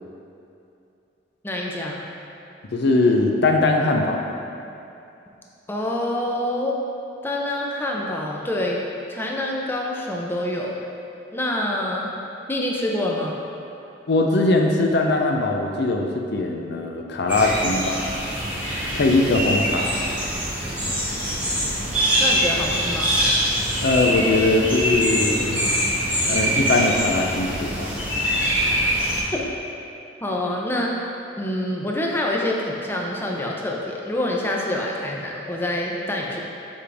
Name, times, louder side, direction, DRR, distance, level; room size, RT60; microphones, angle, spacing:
voice 1, 1.4-2.0 5.7-6.8 7.2-8.8 9.1-10.8 11.3-12.1 12.5-13.4 22.2-23.1 29.3-29.4 30.2-30.9 31.4-36.4, left 1 dB, 10° left, -2 dB, 0.6 m, -26 dB
voice 2, 2.7-4.2 14.1-18.0 19.0-20.0 23.8-25.7 26.3-27.9, left 2 dB, 60° left, 2 dB, 0.5 m, -21 dB
sound 1, 17.3-29.2, equal, 10° right, 1.4 m, -23 dB
7.2 x 5.0 x 3.4 m, 2.7 s
head